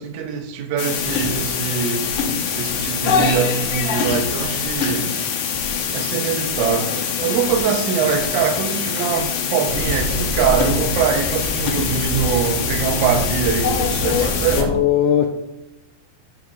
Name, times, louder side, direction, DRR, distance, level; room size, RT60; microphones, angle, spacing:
voice 1, 0.0-2.1 2.6-5.1 5.9-14.8, right 7 dB, 80° right, 5 dB, 3.2 m, -23 dB
sound 1, 0.8-14.6, left 6 dB, 70° left, 2.0 m, -24 dB
sound 2, 9.7-14.6, left 2 dB, 40° left, 0.9 m, -27 dB
voice 2, 14.6-15.3, left 10 dB, 85° left, 5 dB, 2.3 m, -18 dB
10.5 x 3.5 x 6.9 m, 0.92 s
omnidirectional pair, 5.1 m